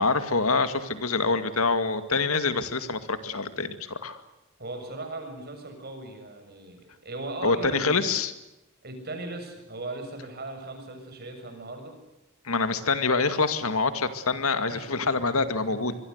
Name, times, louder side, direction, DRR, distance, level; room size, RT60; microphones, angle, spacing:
voice 1, 0.0-4.2 7.4-8.3 12.4-15.9, left 4 dB, 80° left, 10 dB, 2.2 m, -26 dB
voice 2, 4.6-8.1 8.8-11.9 14.7-14.9 15.9-16.0, right 2 dB, 50° right, 6 dB, 7.0 m, -38 dB
25.5 x 22.5 x 8.2 m, 0.95 s
head